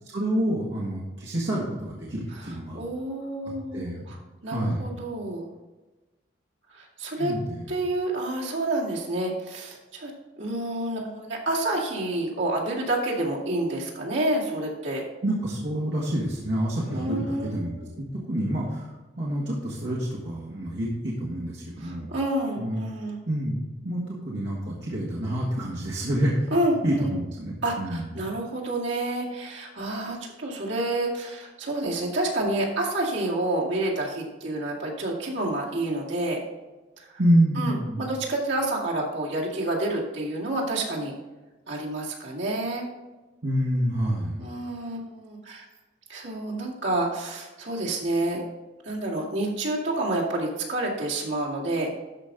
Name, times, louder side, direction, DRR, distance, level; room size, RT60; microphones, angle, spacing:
voice 1, 0.1-2.8 3.7-4.1 4.5-4.9 7.2-7.7 15.2-22.1 22.6-22.8 23.3-26.5 26.8-28.2 37.2-38.1 43.4-44.4, right 1 dB, 65° right, -5 dB, 1.7 m, -27 dB
voice 2, 2.4-4.2 4.4-5.5 6.7-7.3 7.7-10.1 10.4-15.0 16.9-17.9 21.8-23.2 26.5-27.1 27.6-36.4 37.0-37.2 37.6-41.1 41.7-42.9 44.4-45.6 46.1-48.4 48.8-51.9, right 1 dB, 85° right, -3 dB, 2.2 m, -29 dB
12.5 x 5.2 x 3.8 m, 1.1 s
head